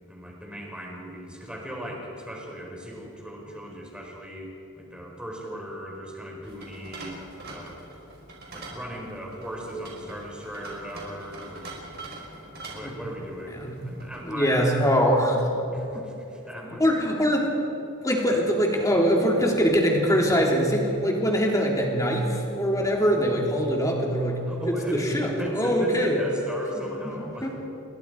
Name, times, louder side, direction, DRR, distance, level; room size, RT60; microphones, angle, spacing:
voice 1, 0.1-4.5 4.8-7.8 8.5-14.9 15.7-16.9 24.5-27.5, equal, 5° right, -1 dB, 4.6 m, -37 dB
sound 1, 6.4-14.5, right 2 dB, 50° right, 4.8 m, -43 dB
voice 2, 14.2-15.5 15.9-16.0 16.8-17.5 18.0-24.4 24.7-26.2 26.8-26.9 27.4-27.5, equal, 15° left, -1 dB, 3.4 m, -23 dB
29.0 x 21.5 x 4.9 m, 2.9 s
head